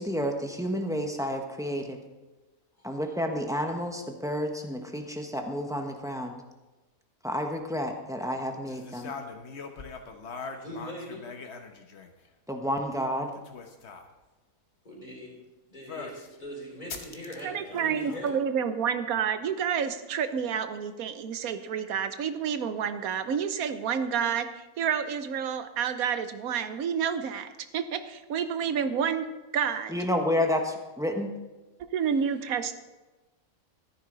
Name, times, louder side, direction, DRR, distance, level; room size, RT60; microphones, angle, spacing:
voice 1, 0.0-2.0 2.8-6.4 7.2-9.1 12.5-13.3 29.9-31.3, equal, 5° right, 3 dB, 1.0 m, -30 dB
sound 1, 8.7-12.3 13.2-14.1 15.9-16.3 16.9-18.3, left 4 dB, 55° left, 1.2 m, -42 dB
voice 2, 10.5-11.2 14.8-15.4 15.7-18.3, equal, 30° left, -2 dB, 3.2 m, -41 dB
voice 3, 17.4-29.3 29.5-29.9 31.8-32.7, right 7 dB, 80° right, 10 dB, 1.3 m, -29 dB
13.5 x 10.5 x 3.9 m, 1.1 s
omnidirectional pair, 1.5 m